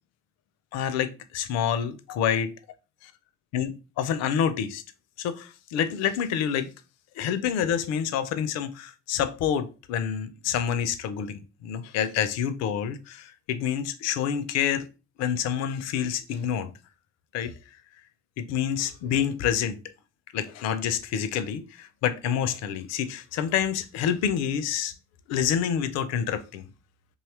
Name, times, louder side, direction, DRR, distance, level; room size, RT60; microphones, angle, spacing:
voice 1, 0.7-2.5 3.0-3.1 3.5-4.8 5.2-6.7 7.2-14.9 15.2-16.7 17.3-17.6 18.4-19.8 20.3-24.9 25.3-26.6, left 8 dB, 55° left, 0.4 m, -28 dB
2.7 x 2.3 x 3.1 m
figure-of-eight pair, 40°, 32 cm